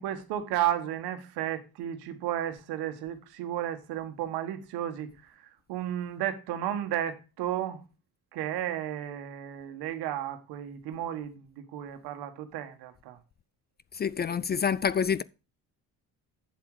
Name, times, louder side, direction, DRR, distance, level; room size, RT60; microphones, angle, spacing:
voice 1, 0.0-7.8 8.3-13.2, right 11 dB, 80° right, 1.5 m, -33 dB
voice 2, 13.9-15.2, left 7 dB, 30° left, 0.4 m, -27 dB
8.3 x 7.4 x 4.8 m
supercardioid pair, 75°, 38 cm